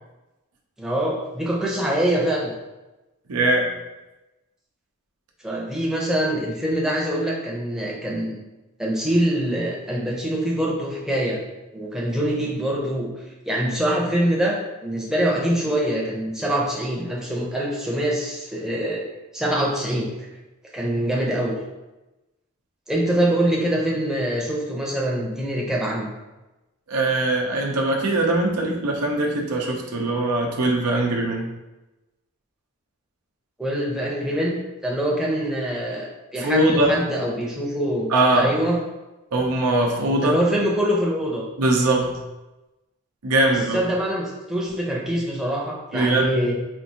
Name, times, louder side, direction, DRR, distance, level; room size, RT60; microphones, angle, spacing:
voice 1, 0.8-2.5 5.4-8.4 8.8-11.4 11.7-13.1 13.5-19.1 19.3-20.1 20.7-21.5 22.9-26.1 33.6-38.8 40.2-41.4 43.5-46.5, right 1 dB, ahead, -4 dB, 0.6 m, -24 dB
voice 2, 3.3-3.7 26.9-31.4 36.4-36.9 38.1-38.5 39.3-40.4 41.6-42.2 43.2-43.8 45.9-46.3, right 2 dB, 90° right, 0 dB, 0.7 m, -21 dB
4.4 x 2.6 x 2.8 m, 1.0 s
head